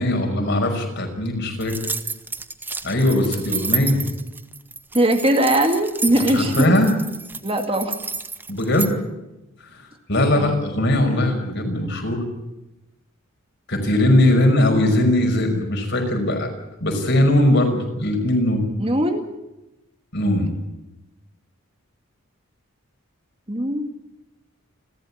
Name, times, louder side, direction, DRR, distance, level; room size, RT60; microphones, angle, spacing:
voice 1, 0.0-1.8 2.8-4.0 6.2-7.0 8.5-8.9 9.6-9.8 10.1-12.2 13.7-16.5 16.8-18.7 20.1-20.5, left 1 dB, 55° left, 4 dB, 5.6 m, -20 dB
sound 1, 1.6-8.9, right 4 dB, 10° right, 0.9 m, -30 dB
voice 2, 4.9-6.7 7.4-7.9 10.3-10.5 18.8-19.3 23.5-23.9, right 1 dB, 25° right, 5 dB, 2.1 m, -20 dB
29.5 x 13.5 x 8.6 m, 0.96 s
head